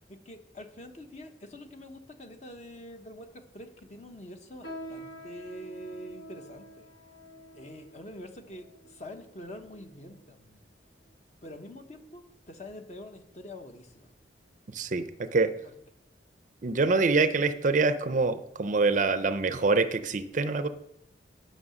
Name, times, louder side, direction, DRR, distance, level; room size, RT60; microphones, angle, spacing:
voice 1, 0.1-6.9 7.5-10.7 11.4-14.1 15.6-15.7 17.4-17.5, left 1 dB, 40° left, 6 dB, 1.0 m, -45 dB
sound 1, 4.6-10.3 11.0-11.1 11.8-12.1 12.5-12.7 13.4-13.5, right 1 dB, 75° left, 1.3 m, -47 dB
voice 2, 14.7-15.5 16.6-20.7, right 3 dB, 45° right, 11 dB, 0.5 m, -25 dB
9.7 x 5.7 x 6.4 m, 0.80 s
head